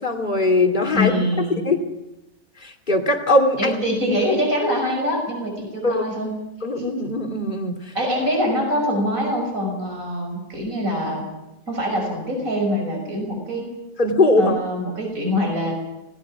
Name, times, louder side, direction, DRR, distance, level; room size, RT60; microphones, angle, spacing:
voice 1, 0.0-1.2 1.5-1.8 2.6-3.7 5.8-6.0 6.6-7.9 14.0-14.5, left 2 dB, 35° left, 3 dB, 2.8 m, -20 dB
voice 2, 0.9-1.6 3.6-6.3 6.7-6.8 7.9-11.3 11.7-13.7 14.4-15.7, equal, 80° right, 1 dB, 6.4 m, -24 dB
26.0 x 19.0 x 6.1 m, 0.96 s
omnidirectional pair, 1.4 m